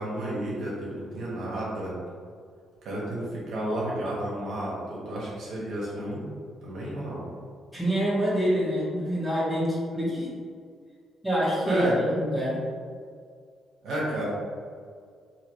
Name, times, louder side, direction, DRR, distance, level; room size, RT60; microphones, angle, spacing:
voice 1, 0.0-1.9 2.8-6.3 6.6-7.2 11.7-12.0 13.8-14.2, right 1 dB, 75° right, -6 dB, 1.1 m, -32 dB
voice 2, 7.7-10.3 11.2-12.6, equal, 5° right, -8 dB, 1.1 m, -26 dB
2.8 x 2.8 x 3.0 m, 2.1 s
cardioid pair, 90°, 0 cm